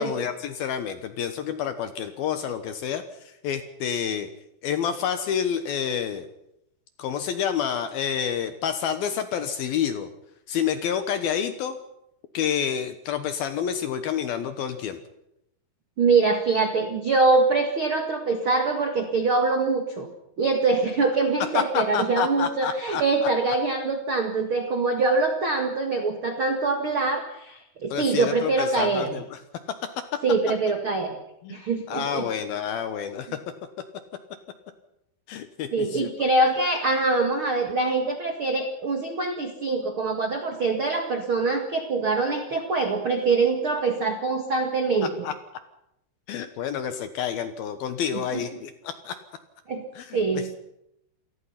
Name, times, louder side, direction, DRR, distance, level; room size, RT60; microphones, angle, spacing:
voice 1, 0.0-4.3 4.6-6.3 7.0-10.1 10.5-11.8 12.3-15.0 21.5-23.0 27.9-29.4 30.0-30.1 31.4-31.5 31.9-33.4 35.3-36.1 45.0-45.3 46.3-49.2 50.0-50.5, left 8 dB, 75° left, 10 dB, 2.3 m, -29 dB
voice 2, 16.0-20.1 20.4-29.2 30.2-31.1 31.5-32.2 35.7-45.1 48.3-48.4 49.7-49.8 50.1-50.5, right 3 dB, 90° right, 5 dB, 1.1 m, -24 dB
28.5 x 19.5 x 5.8 m, 0.82 s
omnidirectional pair, 5.6 m